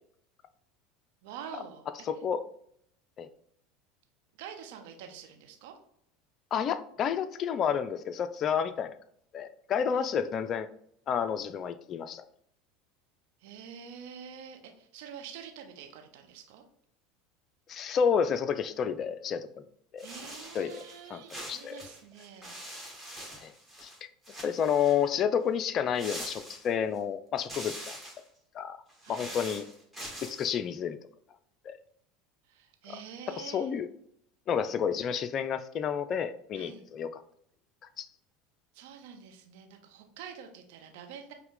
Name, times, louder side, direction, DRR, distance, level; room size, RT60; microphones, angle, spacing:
voice 1, 1.2-1.9 4.3-5.8 9.9-10.1 13.4-16.6 20.0-22.6 29.0-29.3 32.4-33.7 36.5-36.8 38.7-41.3, right 7 dB, 60° right, 4 dB, 0.8 m, -46 dB
voice 2, 2.1-2.4 3.2-3.3 6.5-9.0 9.3-10.7 11.1-12.2 17.7-19.6 19.9-20.1 20.5-20.8 21.1-21.2 21.5-21.8 23.4-23.5 23.8-24.1 24.4-28.0 28.5-28.8 29.1-29.6 30.2-31.0 31.6-31.8 33.4-33.9 34.5-37.2 38.0-38.1, left 7 dB, 40° left, 12 dB, 0.4 m, -30 dB
sound 1, 20.0-21.0 21.3-24.0 24.2-25.1 26.0-27.0 27.4-28.3 28.9-30.5, right 1 dB, 5° right, 1.7 m, -43 dB
5.4 x 2.2 x 3.7 m, 0.69 s
figure-of-eight pair, 75°, 0 cm